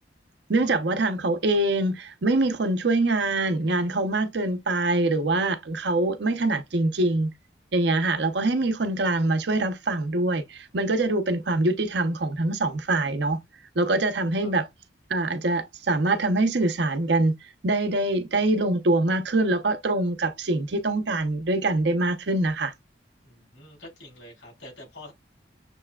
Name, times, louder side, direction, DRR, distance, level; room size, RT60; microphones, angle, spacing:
voice 1, 0.5-7.3 7.7-13.4 13.8-14.7 15.1-17.3 17.6-22.7, right 2 dB, 70° right, 0.7 m, -24 dB
voice 2, 23.2-25.1, left 1 dB, 85° left, 3.3 m, -46 dB
6.8 x 3.3 x 2.3 m
head